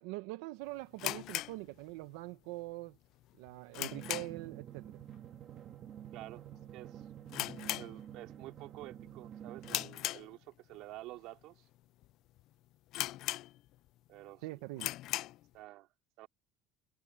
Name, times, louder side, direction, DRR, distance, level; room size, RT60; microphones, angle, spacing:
voice 1, 0.0-3.0 3.4-5.0 14.4-14.9, right 20 dB, 85° right, 0.8 m, -43 dB
sound 1, 1.0-2.3 2.6-2.7 3.2-4.6 4.9-5.2 5.4-5.5 6.2-6.5 6.8-6.9 7.3-8.5 8.8-9.1 9.6-10.8 11.3-11.4 12.0-12.1 12.4-12.5 12.9-13.9 14.3-14.4 14.7-15.5, left 16 dB, 45° left, 0.3 m, -38 dB
Drum, 3.9-9.9, right 10 dB, 30° right, 2.7 m, -49 dB
voice 2, 6.1-6.5 6.7-7.1 7.7-11.6 14.1-14.5 15.5-15.9 16.2-16.3, right 17 dB, 55° right, 3.2 m, -49 dB
cardioid pair, 175°, 0 cm